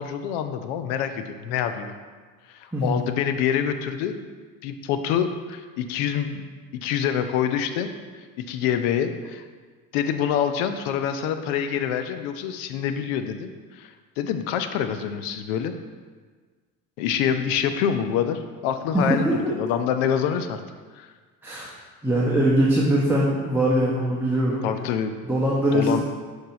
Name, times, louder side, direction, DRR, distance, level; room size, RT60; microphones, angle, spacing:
voice 1, 0.0-1.9 2.5-4.3 4.6-6.4 6.8-7.9 8.5-9.4 9.9-15.7 17.0-20.6 21.0-21.1 24.6-25.1 25.7-26.0, left 8 dB, 60° left, 8 dB, 0.6 m, -26 dB
voice 2, 18.9-19.5 21.4-21.7 22.0-24.6 25.2-26.0, right 1 dB, 5° right, -5 dB, 1.0 m, -22 dB
6.6 x 4.8 x 4.1 m, 1.5 s
figure-of-eight pair, 60°, 49 cm